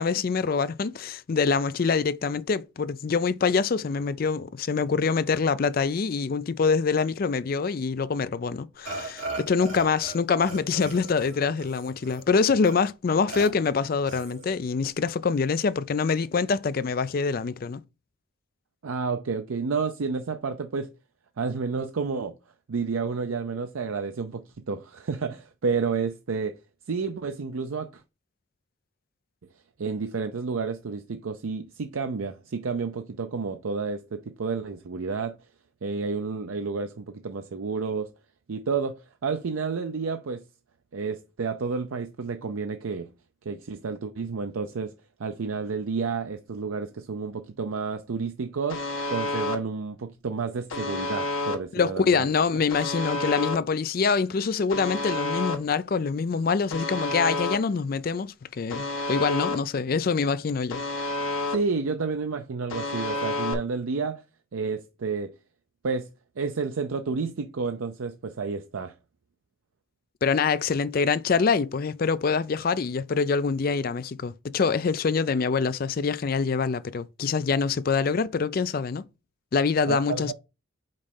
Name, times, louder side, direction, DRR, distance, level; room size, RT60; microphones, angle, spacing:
voice 1, 0.0-17.8 51.7-60.8 70.2-79.0 79.5-80.3, left 5 dB, 45° left, 0.4 m, -25 dB
Burping eructation, 8.9-10.2 10.4-12.2 12.6-12.7 13.3-13.5 14.1-14.6, right 2 dB, 60° right, 3.3 m, -37 dB
voice 2, 18.8-20.9 21.4-22.3 22.7-26.6 26.9-27.9 29.8-35.4 35.8-38.1 38.5-40.4 40.9-43.1 43.5-44.9 45.2-52.3 61.5-64.2 64.5-65.3 65.8-66.1 66.4-68.9 79.9-80.3, right 5 dB, 85° right, 0.5 m, -30 dB
Alarm, 48.7-49.6 50.7-51.6 52.7-53.6 54.7-55.6 56.7-57.6 58.7-59.6 60.7-61.6 62.7-63.5, left 2 dB, 75° left, 1.3 m, -29 dB
5.3 x 4.1 x 5.4 m
head